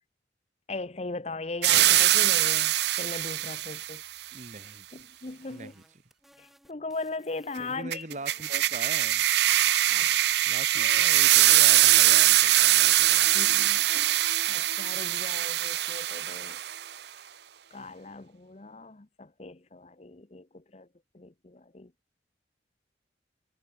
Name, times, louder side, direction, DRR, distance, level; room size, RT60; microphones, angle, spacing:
voice 1, 0.7-4.0 4.9-5.7 6.4-8.1 9.9-10.1 13.3-16.6 17.7-20.9 21.1-21.9, left 3 dB, 35° left, 0.8 m, -39 dB
Air (or steam) pressure release, 1.6-4.0 7.9-16.8, right 14 dB, 65° right, 0.6 m, -22 dB
voice 2, 4.3-4.9 5.5-6.0 7.6-9.3 10.5-13.4, right 2 dB, 40° right, 1.8 m, -42 dB
sound 1, 5.0-8.9 9.1-10.5 10.7-14.0, equal, ahead, 3.2 m, -59 dB
sound 2, 10.7-17.0 17.3-17.4, left 2 dB, 70° left, 3.6 m, -48 dB
head